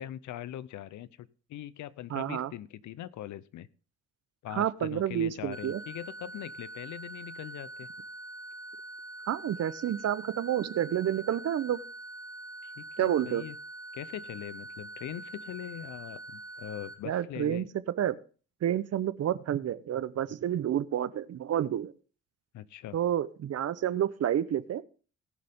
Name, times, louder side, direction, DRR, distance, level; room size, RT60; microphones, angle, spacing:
voice 1, 0.0-3.7 4.4-7.9 12.6-13.6 13.9-17.7 22.5-23.0, left 12 dB, 75° left, 18 dB, 0.7 m, -41 dB
voice 2, 2.1-2.5 4.5-5.8 9.3-11.8 13.0-13.4 17.0-17.6 18.0-18.2 18.6-21.9 22.9-24.8, right 10 dB, 55° right, 16 dB, 0.8 m, -29 dB
sound 1, 5.5-16.9, right 1 dB, 10° right, 2.2 m, -44 dB
18.5 x 6.7 x 3.6 m, 0.38 s
cardioid pair, 90°, 30 cm